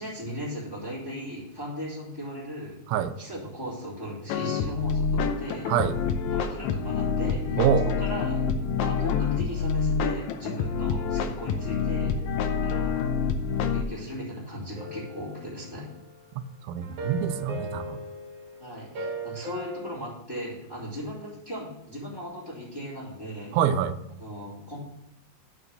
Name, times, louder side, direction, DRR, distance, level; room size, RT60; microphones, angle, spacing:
voice 1, 0.0-2.8 3.2-5.7 6.3-7.6 7.8-8.5 8.8-12.1 12.6-13.0 13.7-15.9 18.6-23.6 24.2-24.9, equal, 15° left, -8 dB, 3.2 m, -37 dB
sound 1, 4.3-13.8, left 6 dB, 80° left, 1.7 m, -27 dB
voice 2, 5.7-6.0 7.6-7.9 16.7-18.0 23.5-24.0, right 8 dB, 85° right, 10 dB, 2.4 m, -25 dB
sound 2, 14.8-16.3 16.8-19.9, right 2 dB, 60° right, 3.0 m, -38 dB
8.6 x 5.1 x 6.6 m, 0.83 s
omnidirectional pair, 4.2 m